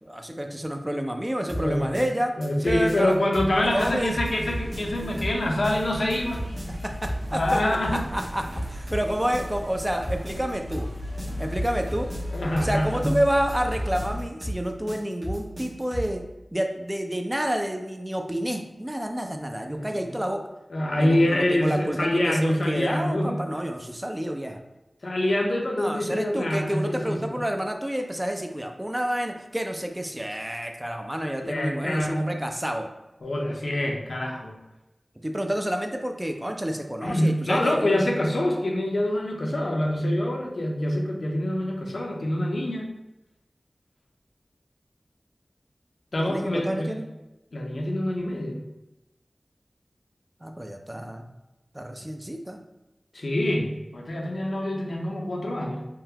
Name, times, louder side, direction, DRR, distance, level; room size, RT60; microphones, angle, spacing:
voice 1, 0.0-2.3 2.6-3.1 3.7-4.1 6.8-7.6 7.9-10.9 11.4-12.1 12.6-16.2 16.5-20.4 21.0-24.6 25.8-32.9 35.2-38.1 46.2-47.1 50.4-51.3 51.7-52.6, equal, 15° right, 4 dB, 0.4 m, -29 dB
sound 1, 1.5-16.2, equal, 55° right, 1.1 m, -34 dB
voice 2, 1.6-2.0 2.4-6.4 7.3-8.0 12.3-13.1 19.7-20.2 20.7-23.4 25.0-27.3 31.4-32.3 33.2-34.5 37.0-42.9 46.1-47.0 47.5-48.6 53.1-55.9, left 1 dB, 75° left, 0 dB, 0.6 m, -26 dB
sound 2, 3.5-14.2, left 1 dB, 40° right, 1.4 m, -36 dB
3.7 x 2.2 x 2.8 m, 0.96 s
wide cardioid pair, 65°, 0 cm